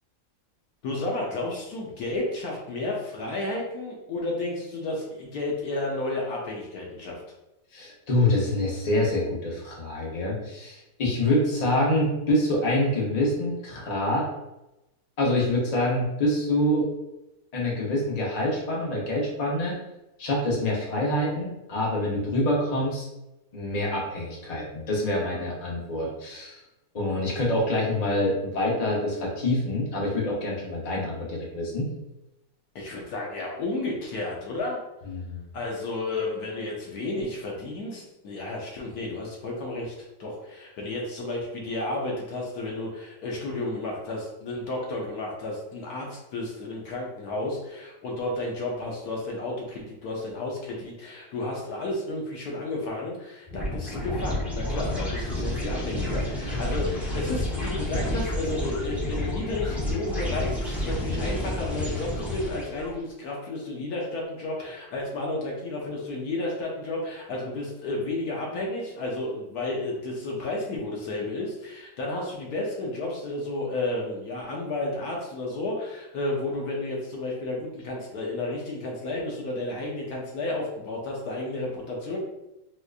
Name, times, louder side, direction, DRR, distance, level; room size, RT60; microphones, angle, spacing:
voice 1, 0.8-7.2 32.7-34.8 35.5-39.9 40.2-82.2, left 2 dB, 65° left, -2 dB, 1.1 m, -32 dB
voice 2, 7.7-14.3 15.2-16.9 17.5-19.8 20.2-23.1 23.5-26.6 26.9-31.9 35.1-35.4, left 1 dB, 85° left, -3 dB, 0.3 m, -26 dB
sound 1, 53.5-62.9, left 1 dB, ahead, 0.4 m, -30 dB
4.3 x 2.5 x 2.4 m, 0.94 s
omnidirectional pair, 2.0 m